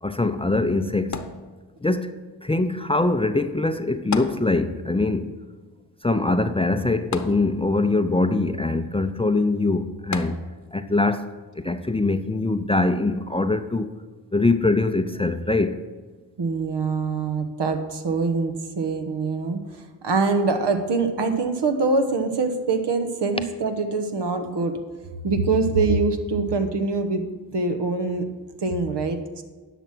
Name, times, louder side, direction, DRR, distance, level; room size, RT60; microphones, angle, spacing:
voice 1, 0.0-1.2 1.8-2.1 2.4-5.3 6.0-10.4 10.7-11.3 11.6-13.9 14.3-15.8, left 2 dB, 15° left, 0.6 m, -23 dB
sound 1, 1.1-2.0 4.1-5.0 5.3-5.4 7.1-8.0 10.1-10.8 11.5-11.6, left 5 dB, 40° left, 1.0 m, -33 dB
voice 2, 16.4-24.8 25.2-27.2 27.5-28.3 28.6-29.4, right 3 dB, 70° right, 1.2 m, -24 dB
10.5 x 6.0 x 6.1 m
cardioid pair, 55°, 43 cm